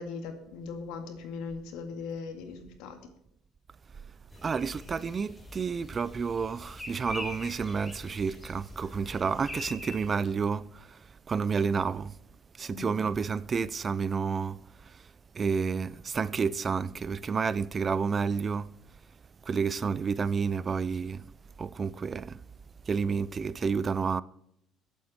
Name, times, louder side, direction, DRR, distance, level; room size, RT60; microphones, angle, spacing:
voice 1, 0.0-3.0 12.7-13.0, left 4 dB, 80° left, 2.1 m, -39 dB
sound 1, 4.3-10.1, left 1 dB, 5° left, 2.6 m, -43 dB
voice 2, 4.4-11.0 11.3-12.1 12.6-15.0 15.3-18.7 19.5-21.2 21.6-22.4 22.9-24.2, right 5 dB, 35° right, 0.4 m, -30 dB
21.0 x 8.4 x 4.3 m
cardioid pair, 100°, 0 cm